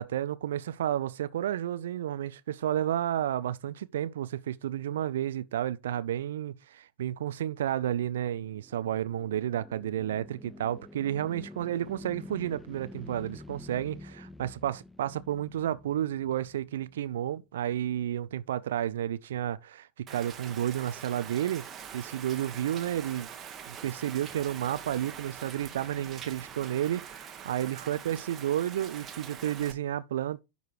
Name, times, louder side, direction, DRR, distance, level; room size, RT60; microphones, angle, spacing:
voice 1, 0.0-21.6 21.9-23.3 23.7-30.4, right 11 dB, 60° right, 0.6 m, -31 dB
sound 1, 8.3-17.1, left 1 dB, 5° left, 0.5 m, -48 dB
Rain, 20.1-29.7, right 8 dB, 25° right, 1.4 m, -44 dB
11.0 x 4.0 x 4.8 m
figure-of-eight pair, 90°, 0 cm